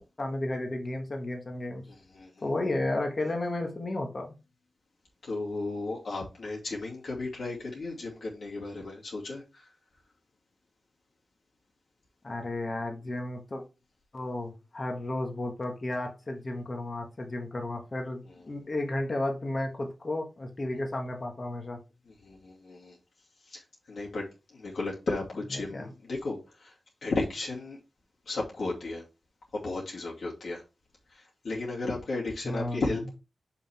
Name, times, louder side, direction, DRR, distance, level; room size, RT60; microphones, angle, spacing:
voice 1, 0.2-1.8 2.4-4.3 12.2-13.6 14.1-18.2 18.5-21.8 25.7-25.9 32.4-33.0, left 2 dB, 35° left, 1.8 m, -33 dB
voice 2, 1.9-2.4 5.2-9.7 22.1-23.0 23.5-23.6 23.9-24.2 24.5-26.7 27.0-27.8 28.3-29.0 29.5-30.6 31.1-33.1, left 3 dB, 70° left, 2.6 m, -34 dB
6.8 x 5.9 x 3.6 m
wide cardioid pair, 130°, 0 cm